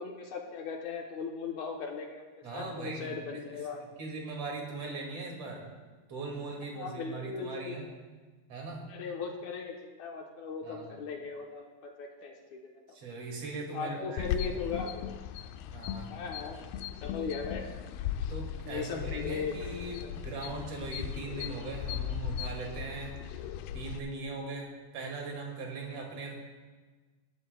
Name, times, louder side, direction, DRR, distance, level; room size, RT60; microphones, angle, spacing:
voice 1, 0.0-2.2 2.5-3.8 6.7-7.8 8.9-12.7 13.7-14.9 16.1-16.7 16.9-17.7 18.6-20.0, left 5 dB, 65° left, 0 dB, 1.9 m, -38 dB
voice 2, 2.4-3.6 4.0-5.6 6.1-7.9 8.5-8.9 10.6-11.0 12.9-14.5 15.7-16.1 18.3-23.1 23.7-26.4, right 3 dB, 45° right, 0 dB, 2.9 m, -40 dB
sound 1, 14.2-24.0, left 9 dB, 85° left, 2.4 m, -38 dB
21.0 x 12.0 x 2.3 m, 1.4 s
omnidirectional pair, 4.6 m